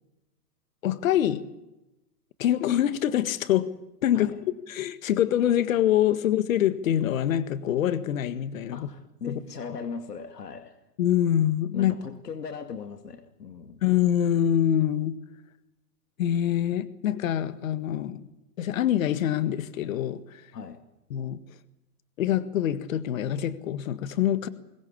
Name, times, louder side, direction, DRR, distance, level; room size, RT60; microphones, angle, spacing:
voice 1, 0.8-1.4 2.4-3.7 4.0-4.3 4.7-8.9 9.3-9.4 11.0-11.9 13.8-15.2 16.2-18.2 18.6-20.4 21.1-21.4 22.2-24.5, left 11 dB, 60° left, 12 dB, 1.7 m, -25 dB
voice 2, 8.7-10.8 11.7-13.8 20.5-20.8, left 5 dB, 85° left, 7 dB, 2.4 m, -38 dB
22.5 x 19.0 x 8.6 m, 0.95 s
hypercardioid pair, 130°, 47 cm